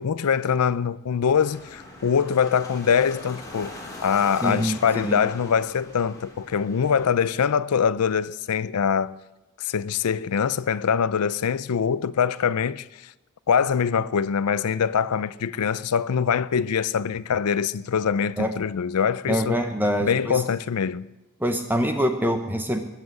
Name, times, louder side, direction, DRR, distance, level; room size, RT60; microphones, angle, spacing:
voice 1, 0.0-9.2 9.6-13.1 13.5-19.6 20.0-21.1, left 7 dB, 85° left, 0.5 m, -23 dB
sound 1, 1.3-7.1, left 1 dB, 15° left, 3.4 m, -42 dB
voice 2, 4.4-5.2 18.4-18.5 19.3-20.4 21.4-22.8, equal, 10° right, 0.9 m, -25 dB
21.5 x 7.6 x 7.7 m
head